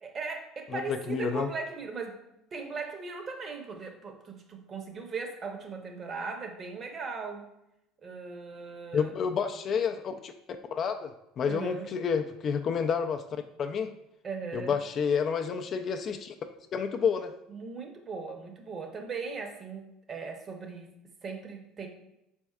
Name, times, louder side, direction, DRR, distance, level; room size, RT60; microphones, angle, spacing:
voice 1, 0.0-2.2 2.5-7.5 8.0-9.1 11.5-11.9 14.2-14.8 17.5-20.9 21.2-21.9, right 4 dB, 35° right, 4 dB, 0.8 m, -38 dB
voice 2, 0.7-1.5 8.9-10.3 10.7-11.1 11.4-13.2 13.6-13.9 14.5-16.3 16.7-17.3, left 6 dB, 40° left, 6 dB, 0.4 m, -29 dB
4.3 x 4.2 x 2.4 m, 0.85 s
supercardioid pair, 105°, 0 cm